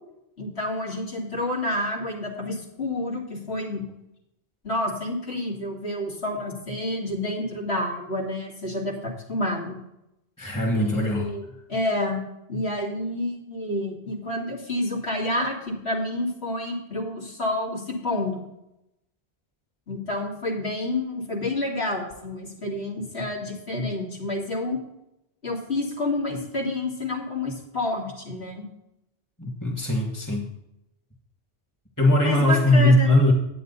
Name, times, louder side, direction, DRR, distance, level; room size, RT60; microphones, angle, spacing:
voice 1, 0.4-3.8 4.6-9.8 10.7-12.2 12.5-18.4 19.9-24.8 25.4-28.7 32.2-33.1, left 1 dB, 75° left, -3 dB, 2.6 m, -29 dB
voice 2, 10.4-11.3 29.4-30.5 32.0-33.3, left 1 dB, 15° left, 0 dB, 1.9 m, -20 dB
10.0 x 8.9 x 4.0 m, 0.85 s
omnidirectional pair, 1.1 m